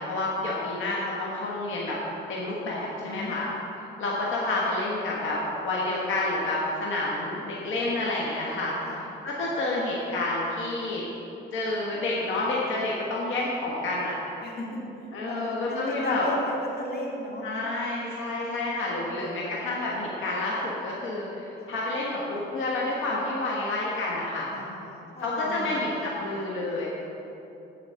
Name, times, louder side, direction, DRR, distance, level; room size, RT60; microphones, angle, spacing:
voice 1, 0.0-2.0 2.3-3.5 4.0-11.0 11.5-14.1 15.1-16.3 17.4-24.5 25.2-26.9, left 2 dB, 80° left, -4 dB, 1.4 m, -29 dB
voice 2, 3.0-3.5 8.8-9.0 14.4-17.5 21.5-21.7 24.5-26.3, left 1 dB, 55° left, -2 dB, 2.2 m, -36 dB
10.5 x 5.1 x 6.9 m, 3.0 s
cardioid pair, 90°, 20 cm